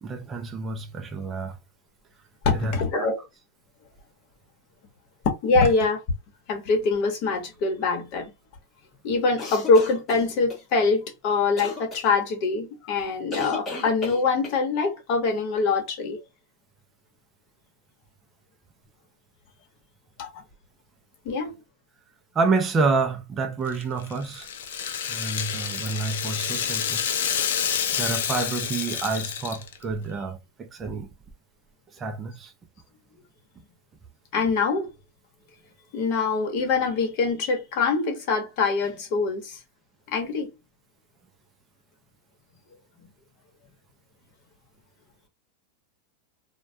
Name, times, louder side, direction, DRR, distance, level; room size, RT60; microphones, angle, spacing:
voice 1, 0.0-1.6 2.5-3.1 22.3-24.5 25.1-27.0 28.0-31.1 32.0-32.5, right 4 dB, 15° right, 0.3 m, -28 dB
voice 2, 2.4-3.2 5.4-6.0 6.5-8.3 9.0-16.2 20.2-20.4 21.2-21.5 34.3-34.9 35.9-39.6 40.1-40.5, left 4 dB, 45° left, 0.9 m, -24 dB
sound 1, 9.4-10.6 11.6-12.0 13.3-14.6, left 2 dB, 20° left, 0.8 m, -34 dB
Rattle (instrument), 23.7-29.9, left 8 dB, 75° left, 0.5 m, -28 dB
2.2 x 2.1 x 2.6 m
supercardioid pair, 155°, 0 cm